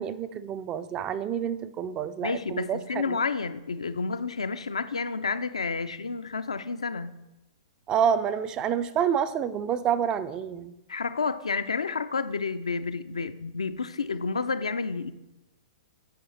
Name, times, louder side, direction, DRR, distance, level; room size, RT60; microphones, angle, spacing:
voice 1, 0.0-3.2 7.9-10.7, right 8 dB, 25° right, 13 dB, 0.3 m, -28 dB
voice 2, 2.2-7.2 10.9-15.1, left 4 dB, 80° left, 11 dB, 0.3 m, -30 dB
8.0 x 5.0 x 3.1 m, 0.95 s
figure-of-eight pair, 110°, 3 cm